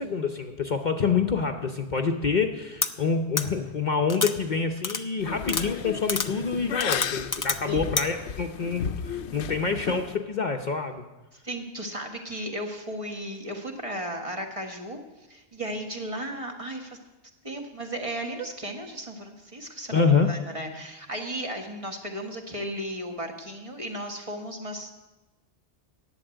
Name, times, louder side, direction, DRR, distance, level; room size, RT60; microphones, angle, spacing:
voice 1, 0.0-11.0 19.9-20.3, left 5 dB, 45° left, 4 dB, 0.8 m, -26 dB
sound 1, 2.8-2.9 3.4-3.5 4.1-4.3 4.8-5.0 5.5-5.6 6.1-6.3 6.8-7.6 8.0-8.1, left 4 dB, 30° left, 0.4 m, -27 dB
sound 2, 5.2-10.2, left 8 dB, 75° left, 0.9 m, -34 dB
voice 2, 11.3-15.0 15.3-17.0 17.4-24.9, right 1 dB, 30° right, 2 dB, 1.4 m, -35 dB
11.0 x 8.0 x 9.0 m, 1.1 s
omnidirectional pair, 1.2 m